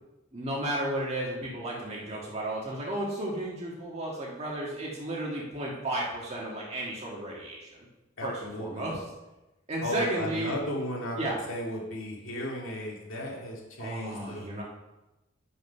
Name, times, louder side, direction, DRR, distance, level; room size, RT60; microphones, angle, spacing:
voice 1, 0.3-7.8 8.2-9.0 9.7-10.5 11.2-11.4 13.8-14.6, right 1 dB, 35° right, -4 dB, 1.7 m, -33 dB
voice 2, 8.2-8.9 9.8-14.6, equal, 90° left, -2 dB, 2.2 m, -35 dB
10.0 x 5.6 x 5.6 m, 1.0 s
head